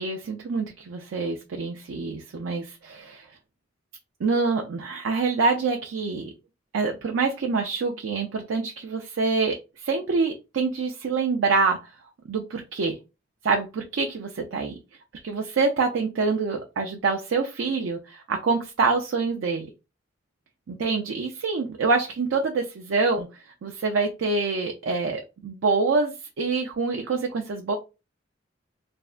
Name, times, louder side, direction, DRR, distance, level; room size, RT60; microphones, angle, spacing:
voice 1, 0.0-3.3 4.2-6.3 6.7-11.8 12.3-13.0 13.4-14.8 15.2-19.7 20.7-27.8, right 4 dB, 80° right, 3 dB, 0.4 m, -26 dB
3.4 x 2.1 x 2.4 m, 0.28 s
head